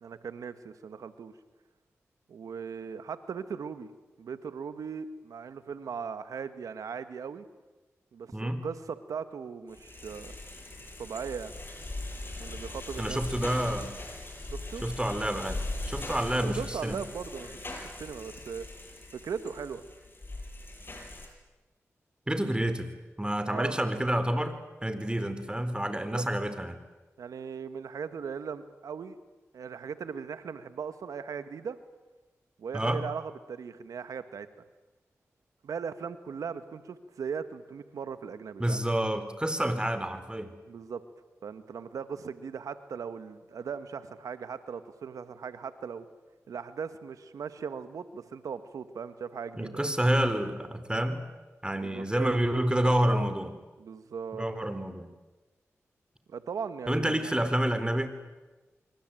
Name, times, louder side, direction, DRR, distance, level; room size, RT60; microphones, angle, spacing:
voice 1, 0.0-1.3 2.3-3.9 4.2-7.4 8.1-10.3 10.8-11.5 12.4-13.5 14.5-14.8 16.4-17.5 18.0-18.7 19.1-19.8 23.5-23.8 25.9-26.2 27.2-29.2 29.5-31.8 32.6-34.5 35.6-38.8 40.7-41.0 41.4-46.0 46.5-49.9 51.8-53.3 53.8-54.4 56.3-57.3, right 6 dB, 90° right, 11 dB, 1.6 m, -38 dB
voice 2, 8.3-8.6 13.0-13.9 14.8-17.0 22.3-22.9 23.2-26.8 32.7-33.0 38.6-40.5 49.6-51.3 51.6-53.5 54.3-55.1 56.9-58.2, right 1 dB, 15° right, 10 dB, 4.3 m, -29 dB
sound 1, 9.7-21.3, left 2 dB, 40° left, 7.6 m, -40 dB
26.0 x 24.0 x 9.3 m, 1.2 s
cardioid pair, 40°, 6 cm